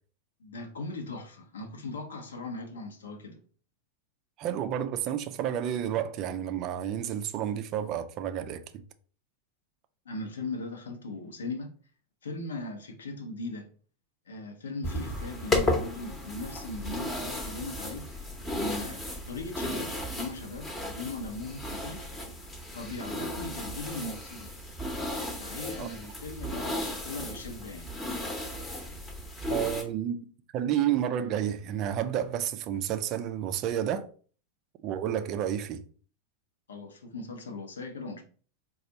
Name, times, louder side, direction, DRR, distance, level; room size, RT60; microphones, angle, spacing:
voice 1, 0.4-3.4 10.0-11.7 12.2-13.7 14.3-22.1 22.7-24.5 25.4-27.9 36.7-38.2, left 2 dB, 65° left, 0.8 m, -39 dB
voice 2, 4.4-8.6 25.8-25.9 29.5-34.1 34.8-35.8, right 10 dB, 40° right, 0.4 m, -30 dB
sound 1, 14.8-29.8, left 1 dB, 15° left, 0.9 m, -34 dB
4.2 x 2.3 x 3.9 m
figure-of-eight pair, 90°, 0 cm